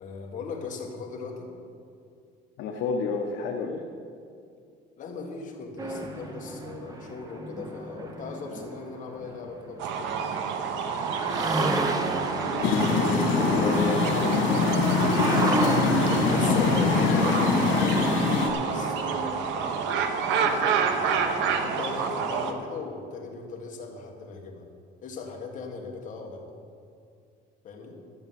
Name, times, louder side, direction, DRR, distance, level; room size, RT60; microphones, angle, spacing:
voice 1, 0.0-1.5 5.0-10.4 16.3-18.0 18.6-24.6 25.0-26.4 27.6-27.9, left 4 dB, 40° left, 0 dB, 1.7 m, -38 dB
voice 2, 2.6-3.8 12.4-14.7, left 4 dB, 70° left, 1 dB, 1.0 m, -31 dB
sound 1, 5.8-9.9 10.4-10.5 10.7-19.8, right 2 dB, 20° right, 0.8 m, -32 dB
sound 2, 9.8-22.5, right 6 dB, 70° right, 1.0 m, -29 dB
sound 3, 12.6-18.5, left 5 dB, 85° left, 2.4 m, -24 dB
12.5 x 7.1 x 7.7 m, 2.4 s
cardioid pair, 175°, 19 cm